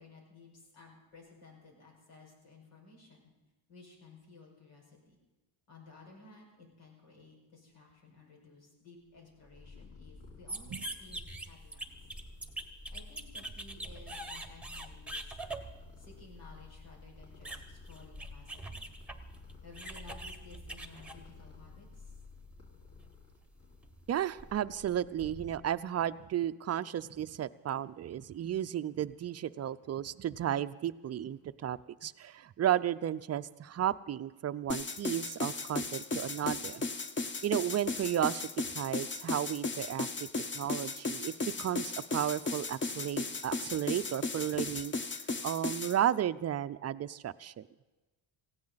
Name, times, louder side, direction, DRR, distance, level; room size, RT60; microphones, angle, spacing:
voice 1, 0.0-3.3 3.7-5.2 5.7-12.0 12.9-15.4 16.0-18.9 19.6-22.1, left 3 dB, 85° left, -1 dB, 5.6 m, -56 dB
Purr, 9.1-26.0, left 3 dB, 40° left, 4.1 m, -53 dB
sound 1, 10.5-21.8 22.2-24.6, right 2 dB, ahead, 1.1 m, -45 dB
voice 2, 24.1-36.8 37.4-40.3 40.5-44.9 45.4-47.7, right 11 dB, 35° right, 13 dB, 0.4 m, -33 dB
sound 2, 34.7-46.0, left 3 dB, 25° left, 0.7 m, -36 dB
18.5 x 16.0 x 4.0 m, 1.1 s
cardioid pair, 115°, 49 cm